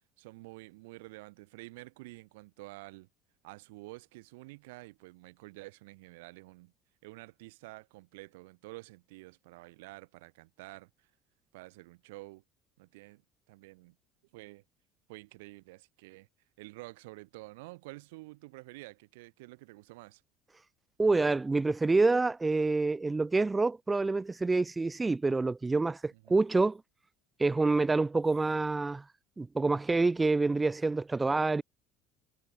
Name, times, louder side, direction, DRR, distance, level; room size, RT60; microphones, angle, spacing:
voice 1, 0.2-3.1 3.4-6.7 7.0-11.1 11.5-12.4 12.8-13.2 13.5-14.0 14.3-14.6 15.1-16.3 16.6-20.2 26.1-26.4, right 23 dB, 85° right, 2.7 m, -49 dB
voice 2, 21.0-26.8 27.4-29.0 29.4-31.6, right 3 dB, 15° right, 0.4 m, -27 dB
supercardioid pair, 105°, 0 cm